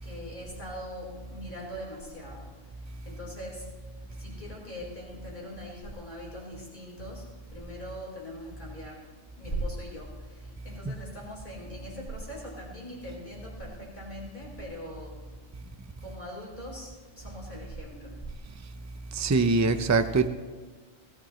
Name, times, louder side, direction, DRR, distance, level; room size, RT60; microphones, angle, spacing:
voice 1, 0.0-2.5 3.0-3.7 4.2-9.1 9.4-15.1 16.0-18.1, equal, 40° left, -3 dB, 4.8 m, -41 dB
voice 2, 19.1-20.3, right 3 dB, 25° right, 8 dB, 0.3 m, -23 dB
18.5 x 13.5 x 3.1 m, 1.4 s
omnidirectional pair, 1.3 m